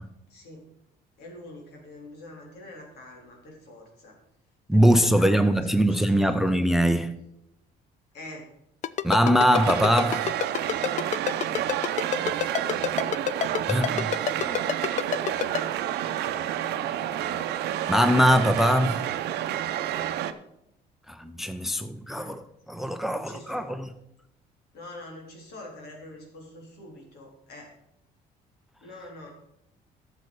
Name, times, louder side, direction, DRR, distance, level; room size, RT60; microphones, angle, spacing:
voice 1, 0.3-0.6 1.2-4.1 4.7-6.4 8.1-8.5 16.6-17.1 21.7-21.8 22.0-22.4 23.1-23.9 24.7-27.7 28.8-29.3, left 1 dB, 75° left, 3.4 m, -45 dB
voice 2, 4.7-7.2 9.0-10.3 13.7-14.1 14.5-14.6 17.9-19.1 21.1-22.4 22.7-23.9, equal, ahead, 0.6 m, -22 dB
Ringtone, 8.8-15.6, left 10 dB, 45° left, 0.4 m, -27 dB
sound 1, 9.5-20.3, right 11 dB, 80° right, 0.7 m, -29 dB
12.0 x 6.9 x 4.8 m
cardioid pair, 110°, 17 cm